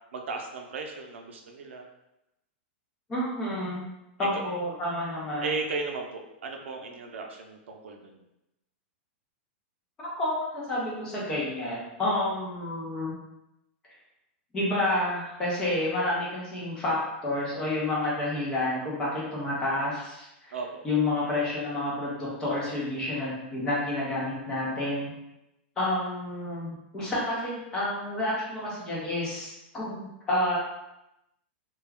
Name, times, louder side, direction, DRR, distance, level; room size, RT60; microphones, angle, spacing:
voice 1, 0.1-1.8 4.2-4.3 5.4-8.2 20.5-20.8, right 4 dB, 90° right, 3 dB, 0.5 m, -35 dB
voice 2, 3.1-3.8 4.2-5.5 10.2-13.1 14.5-17.0 17.2-20.5 20.8-25.1 25.8-30.6, left 1 dB, 10° left, -6 dB, 0.6 m, -29 dB
2.2 x 2.1 x 3.4 m, 0.90 s
supercardioid pair, 180°, 6 cm